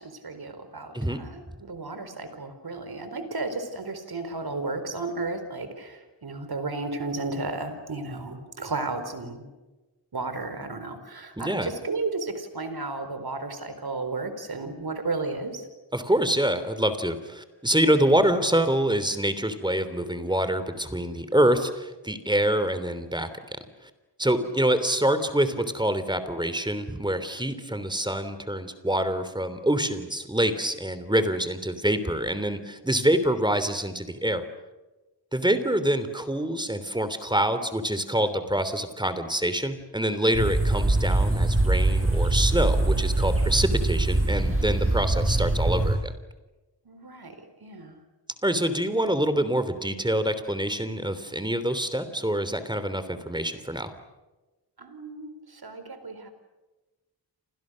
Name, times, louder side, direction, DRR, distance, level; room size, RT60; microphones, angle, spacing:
voice 1, 0.0-9.5 10.1-15.7 24.4-24.6 35.4-35.5 46.8-47.4 47.6-48.0 54.8-56.3, right 3 dB, 60° right, 9 dB, 4.5 m, -34 dB
voice 2, 11.4-11.7 15.9-23.3 24.2-34.4 35.3-46.1 48.4-53.9, right 1 dB, 10° right, 11 dB, 3.2 m, -26 dB
sound 1, 40.3-46.0, right 2 dB, 30° right, 7.2 m, -23 dB
29.5 x 27.0 x 6.5 m, 1.1 s
wide cardioid pair, 90°, 42 cm